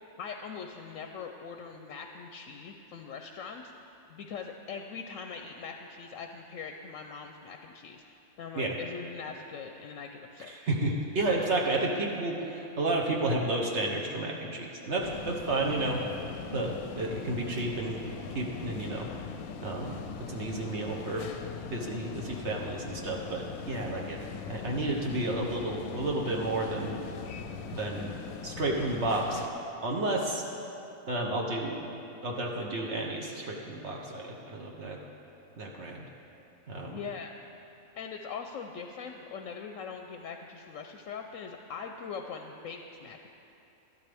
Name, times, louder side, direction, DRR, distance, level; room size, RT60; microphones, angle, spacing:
voice 1, 0.2-3.7 4.1-8.0 8.4-10.5 36.9-37.3 38.0-43.3, left 5 dB, 70° left, 4 dB, 0.9 m, -41 dB
voice 2, 10.5-16.0 16.5-18.0 18.3-19.1 19.6-20.0 20.3-21.3 21.7-24.2 24.5-27.0 27.7-28.1 28.4-29.4 29.8-30.4 31.1-31.7 32.2-35.0 35.6-36.0 36.7-37.0, right 2 dB, 55° right, -1 dB, 1.2 m, -31 dB
sound 1, 15.0-29.5, left 6 dB, 85° left, 1.0 m, -40 dB
13.0 x 12.0 x 3.4 m, 3.0 s
omnidirectional pair, 1.5 m